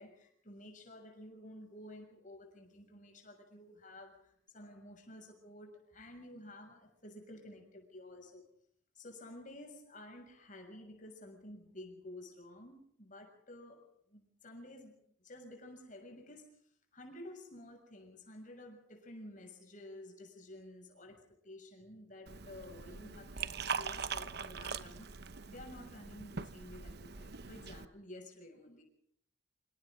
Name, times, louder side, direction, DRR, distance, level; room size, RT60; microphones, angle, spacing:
voice 1, 0.0-8.5 8.9-16.6 16.9-25.1 25.5-28.8, left 1 dB, 40° left, 6.6 m, -52 dB
Liquid, 22.3-27.9, right 6 dB, 55° right, 1.0 m, -42 dB
27.0 x 26.5 x 3.8 m
head